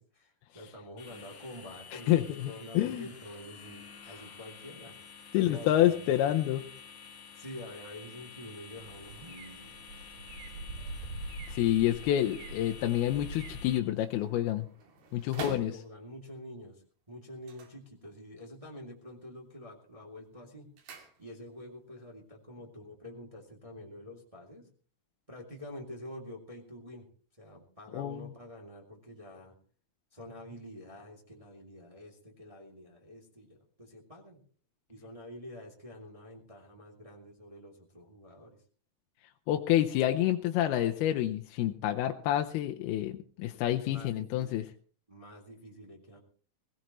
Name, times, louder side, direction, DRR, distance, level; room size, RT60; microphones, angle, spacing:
voice 1, 0.0-5.0 5.3-6.3 7.4-9.7 15.3-20.7 21.2-24.7 25.3-27.1 27.4-29.5 30.1-34.4 34.9-38.6 43.8-44.7 45.1-46.2, left 1 dB, 10° right, -1 dB, 1.9 m, -47 dB
sound 1, 1.0-13.8, left 6 dB, 55° left, 2.8 m, -50 dB
voice 2, 1.9-3.1 5.3-6.7 11.5-14.6 15.1-15.7 27.9-28.3 39.5-44.6, left 12 dB, 80° left, 5 dB, 2.7 m, -28 dB
sound 2, 8.7-13.7, right 2 dB, 55° right, 4.9 m, -44 dB
sound 3, 11.3-16.3 17.3-18.5 18.8-19.3 19.6-21.7 22.0-22.1, right 3 dB, 75° right, 4.4 m, -49 dB
20.5 x 17.0 x 3.1 m, 0.42 s
omnidirectional pair, 4.6 m